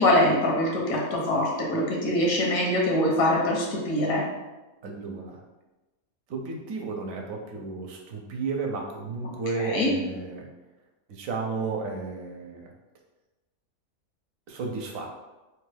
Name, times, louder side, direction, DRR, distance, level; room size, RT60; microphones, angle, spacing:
voice 1, 0.0-4.2 9.6-9.9, left 1 dB, 80° left, -2 dB, 1.1 m, -23 dB
voice 2, 4.8-5.4 6.3-10.5 11.1-12.7 14.5-15.1, right 4 dB, 75° right, 1 dB, 1.0 m, -33 dB
3.1 x 2.2 x 3.2 m, 1.1 s
omnidirectional pair, 1.5 m